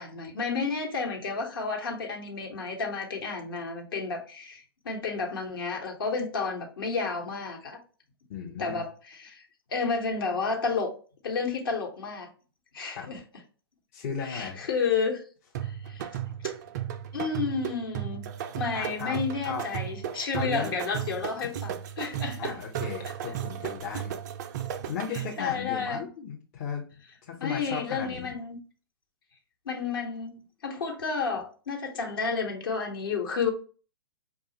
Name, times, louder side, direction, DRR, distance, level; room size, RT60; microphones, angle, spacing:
voice 1, 0.0-7.8 8.6-9.4 9.7-10.9 11.2-12.3 12.7-13.2 14.2-15.2 15.6-16.1 16.4-16.5 17.1-18.2 18.6-22.6 25.1-26.1 27.4-28.6 29.6-33.5, left 5 dB, 60° left, 1.2 m, -31 dB
voice 2, 8.3-8.8 13.0-13.1 13.9-14.6 18.7-19.2 19.4-19.6 20.4-20.7 21.4-21.5 22.4-24.1 24.9-26.8 27.3-28.3, left 6 dB, 35° left, 0.7 m, -35 dB
sound 1, 15.5-25.5, right 10 dB, 45° right, 0.4 m, -35 dB
4.8 x 2.3 x 2.9 m
figure-of-eight pair, 110°, 13 cm